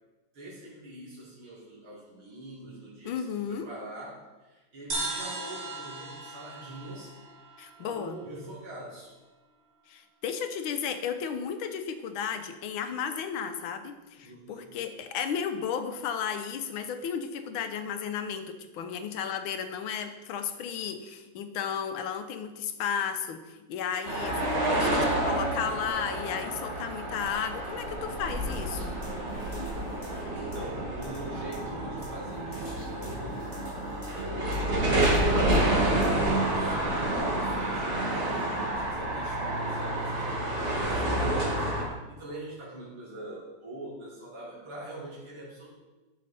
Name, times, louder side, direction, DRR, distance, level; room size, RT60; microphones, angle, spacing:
voice 1, 0.3-7.1 7.8-9.2 14.2-14.7 30.3-33.6 34.1-35.6 35.9-36.8 37.3-45.7, right 1 dB, 85° right, -6 dB, 3.0 m, -44 dB
voice 2, 3.0-3.7 7.6-8.2 9.9-29.0, left 7 dB, 90° left, 9 dB, 1.6 m, -34 dB
sound 1, 4.9-8.4, right 2 dB, 65° right, 2.4 m, -37 dB
sound 2, 24.1-41.9, right 1 dB, 35° right, 1.8 m, -29 dB
sound 3, 28.3-36.3, right 1 dB, 15° left, 2.3 m, -41 dB
11.0 x 6.3 x 4.1 m, 1.2 s
omnidirectional pair, 2.2 m